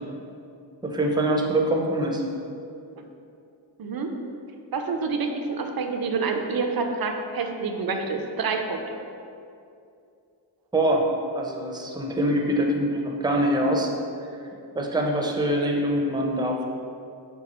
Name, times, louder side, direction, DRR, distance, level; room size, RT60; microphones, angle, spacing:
voice 1, 0.8-2.2 10.7-11.0 11.3-13.9 14.8-16.7, right 1 dB, 10° right, 0 dB, 0.6 m, -24 dB
voice 2, 3.8-4.1 4.7-9.0, right 4 dB, 50° right, 4 dB, 0.6 m, -28 dB
5.5 x 2.3 x 4.1 m, 2.6 s
cardioid pair, 50°, 47 cm